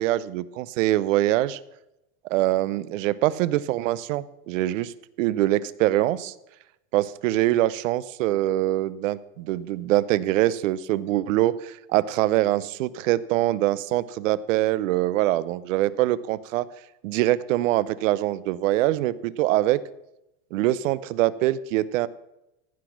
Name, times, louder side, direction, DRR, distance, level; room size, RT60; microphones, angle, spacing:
voice 1, 0.0-1.6 2.3-4.9 5.2-6.3 6.9-16.6 17.0-19.8 20.5-22.1, right 15 dB, 75° right, 18 dB, 0.7 m, -24 dB
15.0 x 6.1 x 5.9 m, 0.88 s
supercardioid pair, 175°, 39 cm